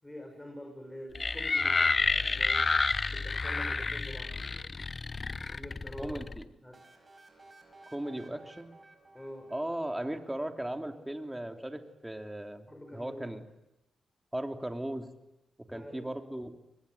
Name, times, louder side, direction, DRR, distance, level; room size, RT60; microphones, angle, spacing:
voice 1, 0.0-2.7 3.0-4.3 5.5-6.3 6.6-6.8 9.1-9.5 10.1-10.2 12.7-13.2 15.7-16.1, equal, 15° left, 3 dB, 6.3 m, -46 dB
sound 1, 1.2-6.4, left 4 dB, 45° left, 1.1 m, -30 dB
voice 2, 6.0-6.5 7.9-8.7 9.5-12.7 12.9-13.4 14.3-15.1 15.6-16.5, right 1 dB, 10° right, 5 dB, 3.1 m, -37 dB
sound 2, 6.7-10.5, right 2 dB, 35° right, 5.7 m, -57 dB
23.0 x 20.5 x 9.5 m, 0.94 s
supercardioid pair, 50°, 0 cm